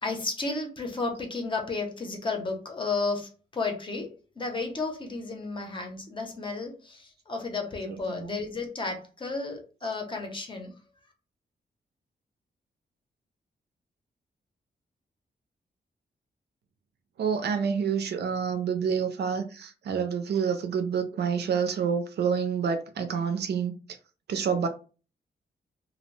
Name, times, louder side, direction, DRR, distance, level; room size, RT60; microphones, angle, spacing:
voice 1, 0.0-10.7, left 3 dB, 30° left, 0.6 m, -33 dB
voice 2, 7.9-8.4 17.2-23.7 24.3-24.7, right 6 dB, 75° right, 0.5 m, -28 dB
2.5 x 2.0 x 3.1 m
wide cardioid pair, 160°, 17 cm